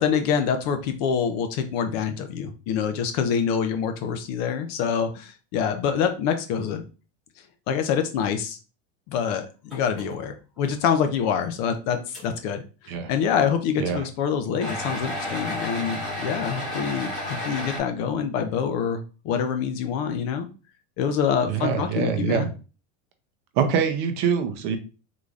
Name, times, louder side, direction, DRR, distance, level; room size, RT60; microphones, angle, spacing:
voice 1, 0.0-6.8 7.7-8.6 9.1-20.5 21.0-22.5, left 7 dB, 40° left, 7 dB, 0.4 m, -26 dB
sound 1, 9.7-10.1 10.6-10.7 11.3-11.4 12.1-12.2 14.6-17.8, left 1 dB, ahead, 1.7 m, -31 dB
voice 2, 21.5-22.5 23.6-24.8, right 7 dB, 45° right, 7 dB, 0.6 m, -24 dB
3.9 x 3.1 x 2.4 m, 0.34 s
supercardioid pair, 175°, 31 cm